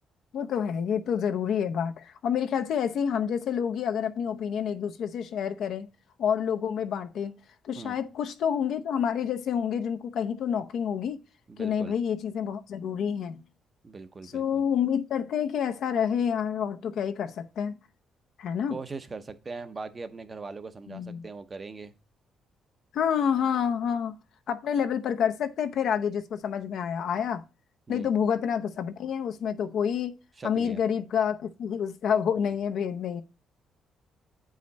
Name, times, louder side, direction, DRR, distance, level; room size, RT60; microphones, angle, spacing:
voice 1, 0.3-5.9 6.2-7.4 7.6-11.2 11.6-13.4 14.3-17.8 18.4-18.8 20.9-21.3 22.9-24.1 24.5-27.4 27.9-30.1 30.4-33.2, left 8 dB, 70° left, 0.7 m, -28 dB
voice 2, 11.5-11.9 13.8-14.6 18.7-21.9 27.9-28.1 30.4-30.8, right 4 dB, 30° right, 0.8 m, -40 dB
8.4 x 5.0 x 4.1 m
cardioid pair, 90°, 0 cm